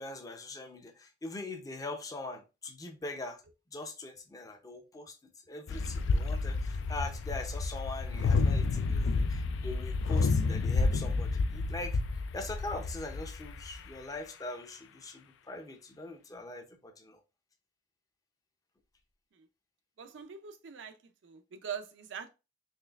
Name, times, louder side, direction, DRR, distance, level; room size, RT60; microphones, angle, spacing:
voice 1, 0.0-3.4 3.7-5.2 5.5-17.2, left 2 dB, 20° left, 0.5 m, -42 dB
sound 1, 5.7-13.9, left 3 dB, 90° left, 0.4 m, -30 dB
voice 2, 20.0-21.0 21.2-22.3, right 7 dB, 75° right, 0.4 m, -42 dB
4.2 x 3.1 x 2.3 m
head